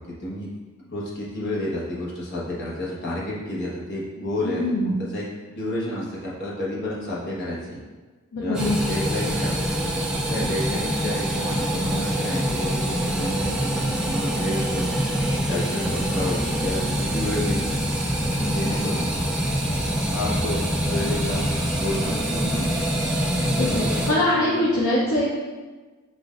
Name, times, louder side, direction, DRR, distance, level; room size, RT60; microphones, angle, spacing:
voice 1, 0.9-5.2 5.5-7.8 8.4-9.6 10.2-15.2 15.5-17.6 18.4-19.0 20.1-21.4 21.7-22.7 23.4-24.5, left 1 dB, 50° left, -6 dB, 1.1 m, -30 dB
voice 2, 4.4-5.0 8.3-8.8 23.6-23.8 24.1-25.3, left 1 dB, 70° left, -6 dB, 0.7 m, -22 dB
sound 1, 8.5-24.1, equal, 5° right, 0.4 m, -25 dB
7.7 x 2.6 x 2.4 m, 1.3 s
head